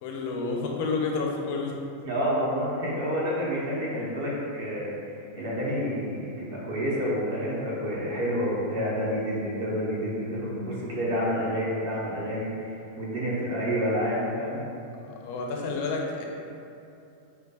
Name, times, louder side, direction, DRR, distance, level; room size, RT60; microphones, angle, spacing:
voice 1, 0.0-1.8 15.2-16.2, left 4 dB, 50° left, 0 dB, 0.4 m, -29 dB
voice 2, 2.0-14.6, equal, 55° right, -6 dB, 0.9 m, -29 dB
4.9 x 2.2 x 2.3 m, 2.7 s
figure-of-eight pair, 90°, 0 cm